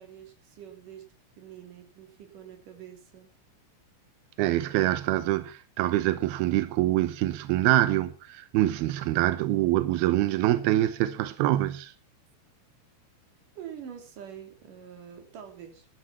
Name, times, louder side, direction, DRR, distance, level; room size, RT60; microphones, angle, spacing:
voice 1, 0.0-3.3 13.6-15.9, right 9 dB, 50° right, 3.9 m, -45 dB
voice 2, 4.4-11.9, right 15 dB, 80° right, 2.2 m, -25 dB
13.0 x 12.0 x 5.6 m
omnidirectional pair, 5.4 m